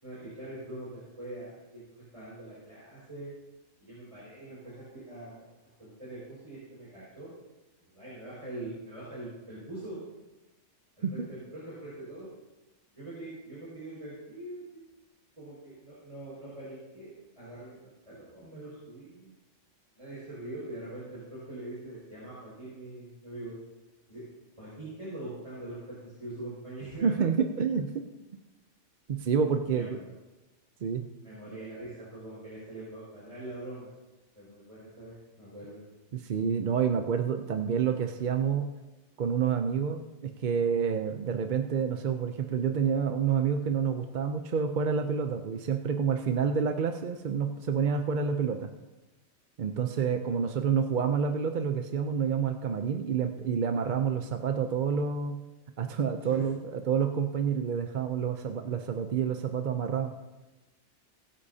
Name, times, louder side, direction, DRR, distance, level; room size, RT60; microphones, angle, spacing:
voice 1, 0.0-3.3 3.8-5.4 5.8-7.3 7.9-10.0 11.0-12.3 12.9-14.9 15.4-19.3 20.0-23.5 24.1-24.2 24.6-27.1 29.7-30.2 31.2-33.9 34.3-35.8 56.2-56.4, right 1 dB, 25° right, -10 dB, 5.1 m, -43 dB
voice 2, 27.0-28.0 29.1-30.0 30.8-31.1 36.1-38.7 39.2-48.7 49.6-55.4 55.8-60.1, right 7 dB, 50° right, 6 dB, 0.6 m, -28 dB
21.5 x 8.4 x 2.8 m, 1.1 s
omnidirectional pair, 1.2 m